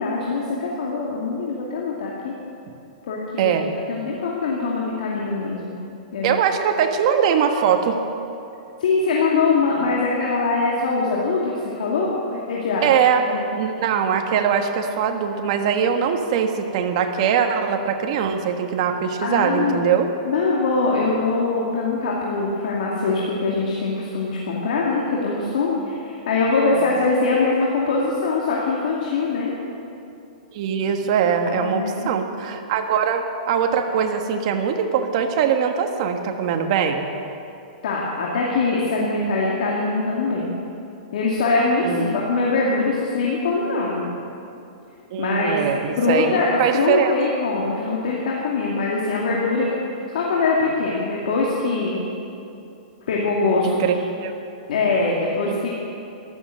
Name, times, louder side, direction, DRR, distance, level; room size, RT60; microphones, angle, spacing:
voice 1, 0.0-2.3 3.0-3.6 3.9-5.7 6.1-6.3 8.8-12.9 13.2-13.5 19.2-19.8 20.3-29.5 31.4-32.1 37.8-40.5 41.1-44.2 45.2-45.6 46.0-52.0 53.1-54.0 54.7-55.7, left 3 dB, 75° left, -4 dB, 2.5 m, -23 dB
voice 2, 3.4-3.7 6.2-8.0 12.8-13.2 13.6-20.1 30.5-37.1 41.8-42.1 45.1-47.1 53.6-53.9 54.2-54.3 55.5-55.6, right 7 dB, 50° right, 5 dB, 1.4 m, -21 dB
14.0 x 12.0 x 6.6 m, 2.7 s
hypercardioid pair, 150°, 4 cm